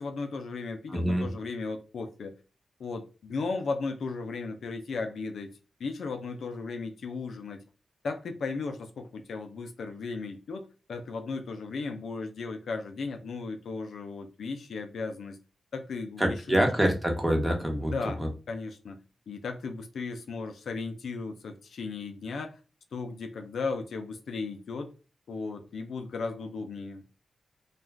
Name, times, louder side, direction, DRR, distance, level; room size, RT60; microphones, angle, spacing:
voice 1, 0.0-2.3 2.8-5.5 5.8-7.6 8.0-15.4 15.7-16.7 17.8-18.2 18.5-19.0 19.3-22.6 22.9-24.9 25.3-27.0, left 4 dB, 80° left, 0.4 m, -36 dB
voice 2, 0.9-1.3 16.2-17.9 18.2-18.3, equal, 10° right, 0.9 m, -25 dB
2.4 x 2.2 x 3.2 m
cardioid pair, 85°, 0 cm